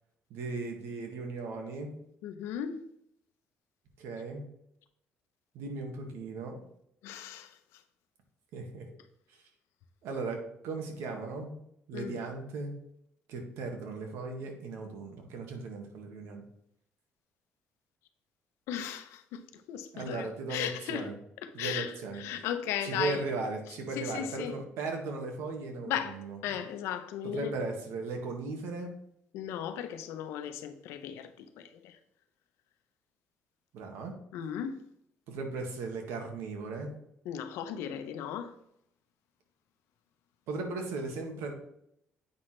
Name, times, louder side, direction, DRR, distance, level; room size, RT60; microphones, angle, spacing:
voice 1, 0.3-1.9 4.0-4.4 5.5-6.6 8.5-8.9 9.3-9.4 10.0-11.5 11.9-12.7 13.3-16.4 19.9-21.2 21.5-22.2 22.8-26.4 27.2-29.0 33.7-34.1 35.3-36.9 40.5-41.5, right 3 dB, 85° right, 1.8 m, -37 dB
voice 2, 2.2-2.8 7.0-7.5 11.9-12.1 18.7-19.4 19.7-21.1 21.6-21.9 22.2-23.2 24.0-24.5 25.9-27.5 29.3-32.0 34.3-34.8 37.2-38.5, left 9 dB, 90° left, 0.8 m, -36 dB
8.5 x 5.9 x 3.3 m
cardioid pair, 110°, 4 cm